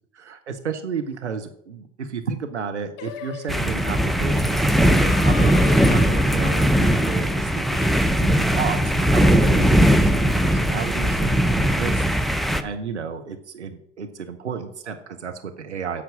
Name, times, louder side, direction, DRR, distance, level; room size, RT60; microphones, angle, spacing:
voice 1, 0.2-16.0, right 6 dB, 85° right, 5 dB, 0.8 m, -32 dB
Singing, 3.0-8.3, left 8 dB, 65° left, 1.0 m, -39 dB
sound 1, 3.5-12.6, equal, ahead, 0.7 m, -19 dB
8.3 x 5.9 x 7.3 m, 0.71 s
figure-of-eight pair, 70°, 34 cm